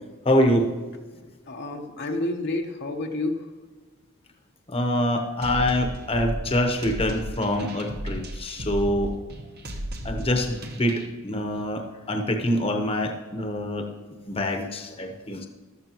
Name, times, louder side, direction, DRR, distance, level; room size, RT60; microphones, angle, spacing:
voice 1, 0.2-0.7 4.7-9.1 10.0-13.9 14.3-15.5, left 1 dB, 25° left, 4 dB, 1.0 m, -25 dB
voice 2, 1.5-3.5, left 2 dB, 50° left, 3 dB, 0.9 m, -29 dB
sound 1, 5.4-11.1, equal, 45° right, 1.1 m, -35 dB
14.0 x 13.0 x 3.0 m, 1.4 s
head